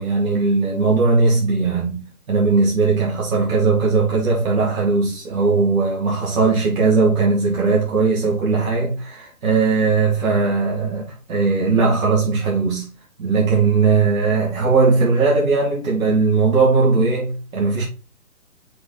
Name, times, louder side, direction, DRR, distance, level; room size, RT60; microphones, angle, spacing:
voice 1, 0.0-12.9 13.2-17.8, right 4 dB, 65° right, 2.4 m, -18 dB
6.0 x 4.8 x 3.8 m
hypercardioid pair, 145°, 44 cm